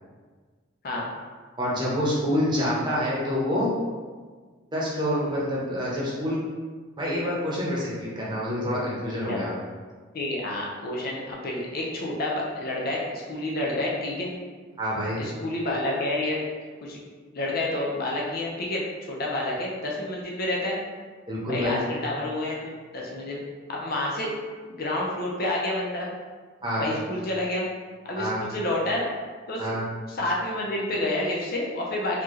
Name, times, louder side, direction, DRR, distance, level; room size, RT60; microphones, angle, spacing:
voice 1, 1.6-3.7 4.7-6.4 7.0-9.5 14.8-15.2 21.3-21.8 26.6-26.9 28.1-28.4 29.6-29.8, equal, 20° right, -6 dB, 1.0 m, -27 dB
voice 2, 10.1-14.4 15.2-16.4 16.8-17.0 17.3-20.8 21.5-23.4 23.7-24.3 24.6-26.1 26.8-27.7 28.0-29.1 29.5-29.7 30.1-32.2, left 1 dB, 50° left, -3 dB, 0.6 m, -29 dB
4.1 x 2.9 x 3.1 m, 1.5 s
head